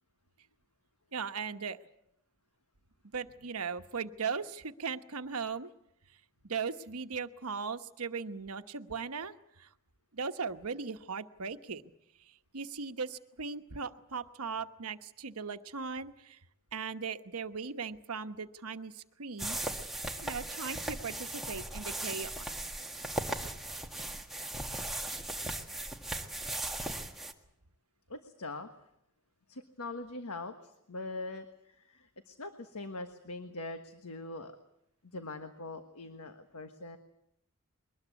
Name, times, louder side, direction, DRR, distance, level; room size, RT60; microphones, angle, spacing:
voice 1, 1.1-1.8 3.1-5.7 6.4-9.7 10.1-11.8 12.3-16.4 16.7-19.6 20.2-22.5, right 5 dB, 75° right, 9 dB, 1.1 m, -38 dB
sound 1, 19.4-27.3, right 1 dB, ahead, 1.6 m, -38 dB
voice 2, 28.1-28.7 29.5-34.6 35.0-37.0, left 2 dB, 80° left, 7 dB, 1.4 m, -42 dB
22.5 x 19.5 x 8.3 m, 0.79 s
head